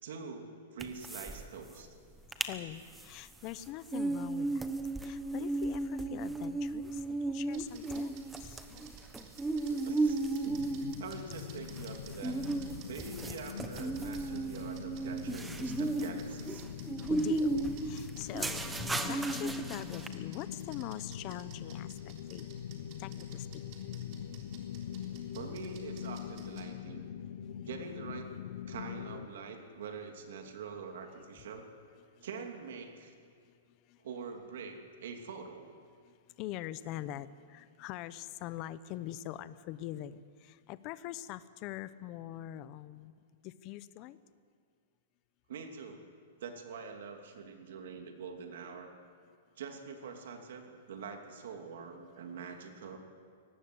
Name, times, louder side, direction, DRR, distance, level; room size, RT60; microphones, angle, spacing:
voice 1, 0.0-1.9 9.7-10.7 11.0-12.4 12.8-16.7 25.3-27.1 27.7-28.4 28.7-31.7 32.2-33.1 34.0-35.7 45.5-46.0 46.4-48.9 49.6-53.0, right 5 dB, 65° right, 4 dB, 2.8 m, -45 dB
sound 1, 0.8-1.4 1.7-1.8 2.1-2.5 2.9-20.1, right 2 dB, 5° right, 1.0 m, -35 dB
voice 2, 2.4-4.7 5.0-7.0 7.3-8.2 8.4-8.6 10.1-10.2 17.0-17.6 17.8-21.9 22.3-22.5 23.0-23.6 36.4-43.1 43.4-44.2, left 14 dB, 30° left, 15 dB, 0.8 m, -43 dB
sound 2, 7.4-26.6, right 6 dB, 35° right, 3.5 m, -55 dB
sound 3, 10.5-29.3, left 9 dB, 60° left, 1.0 m, -43 dB
23.0 x 19.0 x 7.9 m, 2.1 s
hypercardioid pair, 165°, 0 cm